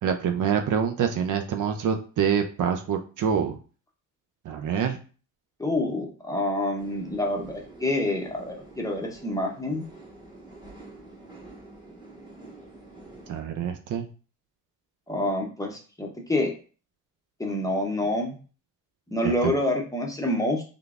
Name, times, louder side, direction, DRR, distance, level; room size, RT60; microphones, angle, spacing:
voice 1, 0.0-3.6 4.4-5.0 13.3-14.1 19.2-19.5, right 7 dB, 60° right, 6 dB, 0.5 m, -26 dB
voice 2, 5.6-9.8 15.1-16.5 17.4-18.4 19.1-20.6, left 1 dB, 10° left, 0 dB, 0.7 m, -27 dB
sound 1, 6.8-13.4, right 2 dB, 10° right, 1.1 m, -47 dB
3.7 x 3.3 x 2.4 m, 0.37 s
cardioid pair, 130°, 36 cm